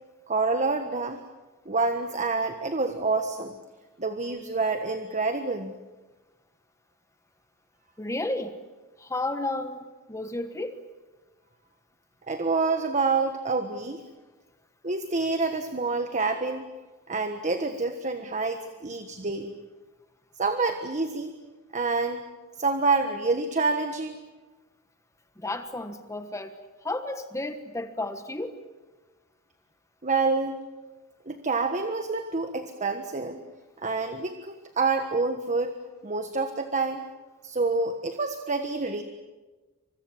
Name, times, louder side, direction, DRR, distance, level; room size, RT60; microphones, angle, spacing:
voice 1, 0.3-1.2 1.6-3.5 4.0-5.7 12.3-14.0 14.8-16.6 17.1-19.5 20.4-21.3 21.7-22.2 22.6-24.2 30.0-30.6 31.3-33.4 33.8-35.7 36.0-37.0 37.4-39.0, right 3 dB, 35° right, 7 dB, 1.4 m, -27 dB
voice 2, 8.0-8.6 9.0-10.8 25.4-26.5 26.8-28.6, left 2 dB, 15° left, 8 dB, 1.3 m, -32 dB
29.0 x 25.5 x 7.3 m, 1.2 s
head